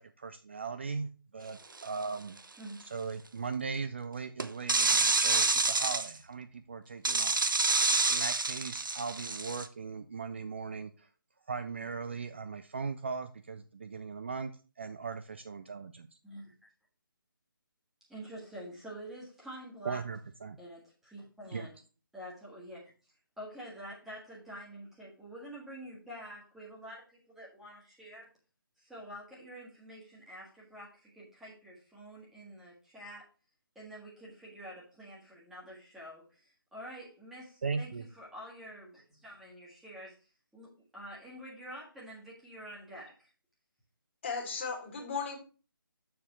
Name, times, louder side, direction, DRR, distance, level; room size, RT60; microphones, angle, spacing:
voice 1, 0.0-2.4 2.9-7.4 8.1-11.1 11.5-14.5 14.8-16.1 19.8-20.6 21.5-21.7 37.6-38.1, right 5 dB, 30° right, 0.4 m, -38 dB
sound 1, 1.8-2.0 4.4-6.1 7.0-9.7, right 3 dB, 65° right, 0.8 m, -28 dB
voice 2, 18.1-20.0 20.6-21.7 22.1-22.9 23.4-28.3 28.8-33.3 33.7-37.9 38.2-40.2 40.5-43.2, equal, ahead, 1.5 m, -47 dB
voice 3, 44.2-45.4, left 5 dB, 30° left, 1.8 m, -36 dB
6.9 x 4.1 x 5.6 m
figure-of-eight pair, 150°, 12 cm